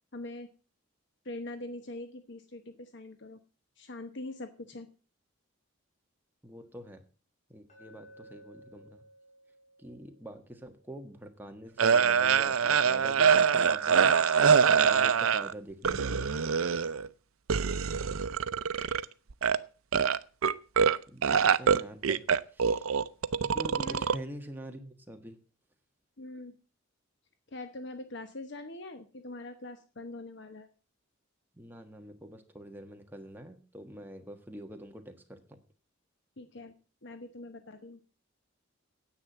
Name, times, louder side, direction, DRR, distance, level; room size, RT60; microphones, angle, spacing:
voice 1, 0.1-0.5 1.2-3.4 3.8-4.9 23.8-24.0 26.2-26.5 27.5-30.7 36.4-36.7 37.0-38.0, left 2 dB, 55° left, 8 dB, 1.0 m, -43 dB
voice 2, 6.4-7.0 7.5-9.0 9.8-14.2 14.7-16.3 21.1-22.3 22.5-22.9 23.4-25.4 31.6-35.6, right 1 dB, 10° right, 5 dB, 1.4 m, -45 dB
Glass, 7.7-11.8, equal, 35° left, 4.6 m, -57 dB
sound 1, 11.8-15.5 15.8-17.1 17.5-19.0 19.3-19.6 19.9-21.0 21.2-24.2, right 6 dB, 85° right, 0.6 m, -24 dB
9.8 x 8.4 x 7.1 m, 0.37 s
head